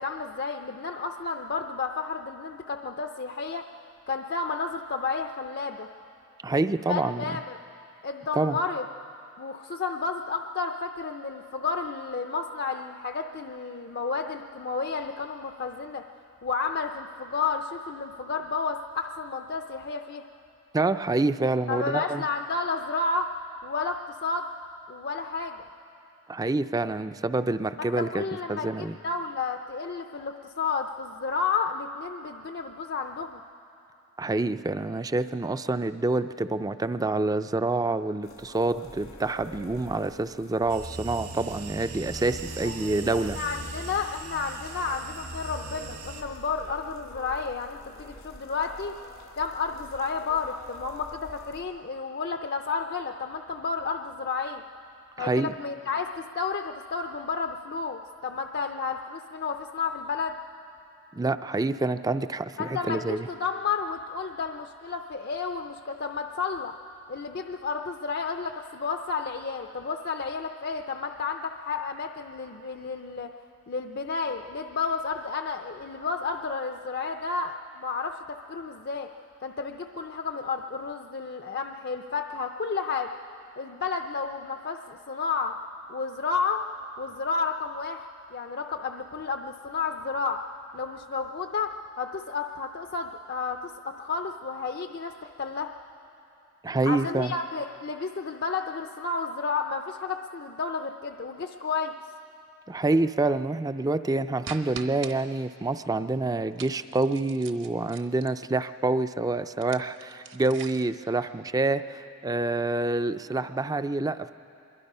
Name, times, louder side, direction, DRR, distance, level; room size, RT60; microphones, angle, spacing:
voice 1, 0.0-3.7 4.1-5.9 6.9-7.6 8.0-8.8 9.4-16.0 16.4-20.2 21.7-23.3 23.6-24.5 24.9-25.7 27.8-33.4 42.6-48.9 49.3-54.6 55.2-60.4 62.6-66.7 67.1-73.3 73.7-79.1 79.4-83.1 83.6-85.5 85.9-86.6 87.0-90.4 90.7-95.7 96.9-101.9, left 4 dB, 50° left, 5 dB, 0.5 m, -31 dB
voice 2, 6.4-7.3 8.4-8.6 20.7-22.2 26.3-28.2 28.5-29.0 34.2-43.4 55.2-55.5 61.1-63.3 96.6-97.3 102.7-114.3, right 2 dB, 15° right, 11 dB, 0.4 m, -27 dB
sound 1, 38.2-51.6, left 1 dB, 85° left, 2.6 m, -47 dB
sound 2, 40.7-46.2, right 3 dB, 75° right, 2.2 m, -40 dB
sound 3, 104.4-105.1 106.6-108.4 109.5-111.0, right 6 dB, 60° right, 1.0 m, -42 dB
25.0 x 22.0 x 5.5 m, 2.7 s
head